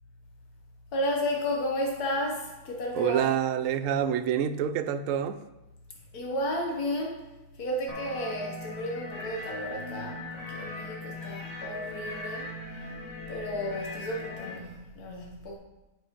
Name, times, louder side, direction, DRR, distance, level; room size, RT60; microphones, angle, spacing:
voice 1, 0.9-3.3 6.1-7.3 7.5-12.5 13.3-15.5, equal, 90° left, 0 dB, 1.6 m, -33 dB
voice 2, 2.9-5.4, right 9 dB, 70° right, 10 dB, 0.9 m, -27 dB
sound 1, 7.9-14.5, left 2 dB, 50° left, 1.8 m, -39 dB
7.7 x 6.2 x 5.1 m, 1.0 s
omnidirectional pair, 1.6 m